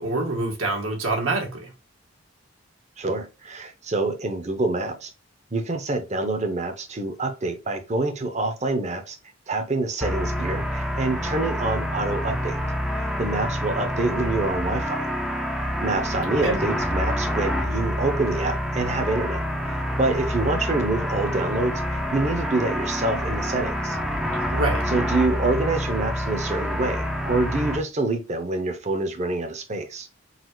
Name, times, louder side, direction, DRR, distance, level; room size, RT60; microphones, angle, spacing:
voice 1, 0.0-1.7 16.4-16.6 24.5-24.8, right 2 dB, 75° right, 1.5 m, -26 dB
voice 2, 3.0-5.1 5.5-9.2 9.5-12.6 12.9-15.1 15.8-24.0 24.9-30.1, right 2 dB, 35° right, 0.7 m, -26 dB
sound 1, 10.0-27.8, equal, ahead, 0.4 m, -27 dB
4.0 x 2.4 x 4.5 m
head